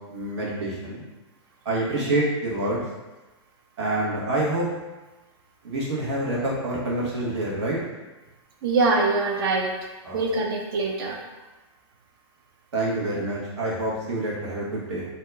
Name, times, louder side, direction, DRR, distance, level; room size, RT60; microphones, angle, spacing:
voice 1, 0.1-1.0 1.6-2.8 3.8-4.7 5.6-7.8 10.0-10.2 12.7-15.0, right 1 dB, 70° right, -5 dB, 1.2 m, -27 dB
voice 2, 8.6-9.7 10.1-11.2, right 3 dB, 50° right, 0 dB, 0.5 m, -23 dB
2.7 x 2.3 x 3.4 m, 1.2 s
hypercardioid pair, 160°, 15 cm